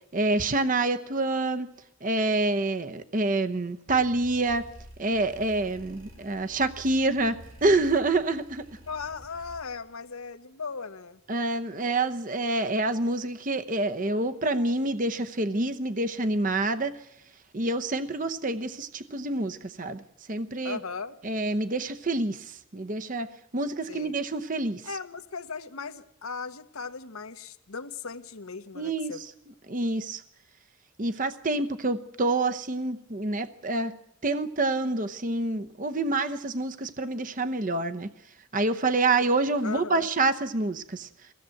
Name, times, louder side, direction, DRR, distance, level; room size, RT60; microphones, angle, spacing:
voice 1, 0.1-1.7 2.0-4.6 5.0-8.6 11.3-16.9 17.5-20.0 20.3-20.8 21.2-23.3 23.5-24.8 28.7-29.3 29.7-30.2 31.0-33.9 34.2-38.1 38.5-41.1, right 2 dB, 40° right, 9 dB, 0.8 m, -27 dB
sound 1, 3.9-9.9, equal, 65° right, 3.0 m, -49 dB
voice 2, 8.9-11.2 20.6-21.2 23.9-24.2 24.8-29.2 39.6-40.1, left 5 dB, 85° left, 8 dB, 1.2 m, -37 dB
23.0 x 16.5 x 7.8 m, 0.80 s
head